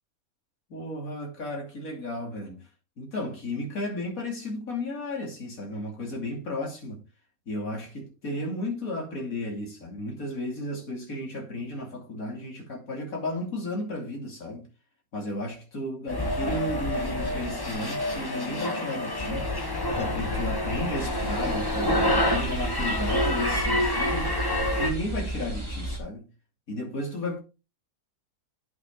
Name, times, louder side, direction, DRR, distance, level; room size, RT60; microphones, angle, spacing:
voice 1, 0.7-2.7 3.0-7.0 7.5-14.7 15.1-19.5 19.9-24.3 24.7-26.3 26.7-27.4, left 1 dB, 70° left, 3.2 m, -34 dB
sound 1, 16.1-24.9, left 1 dB, 15° left, 1.0 m, -28 dB
sound 2, 20.9-26.0, right 1 dB, 20° right, 2.3 m, -33 dB
9.3 x 5.8 x 3.7 m
omnidirectional pair, 1.6 m